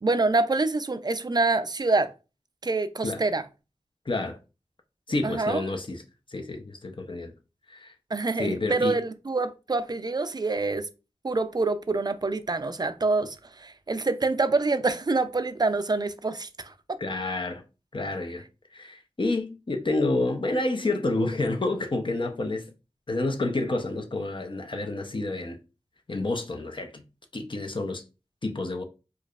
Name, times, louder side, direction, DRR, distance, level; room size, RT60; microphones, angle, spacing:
voice 1, 0.0-2.1 2.6-3.4 5.2-5.6 8.1-10.9 11.2-17.0, right 3 dB, 35° right, 0.4 m, -26 dB
voice 2, 4.1-4.4 5.1-6.0 6.3-7.3 7.7-7.9 8.4-9.0 17.0-17.6 17.9-18.4 18.7-22.7 23.1-25.6 26.1-27.0 27.3-28.0 28.4-28.8, left 2 dB, 45° left, 0.6 m, -29 dB
4.6 x 2.5 x 2.4 m
wide cardioid pair, 50°, 12 cm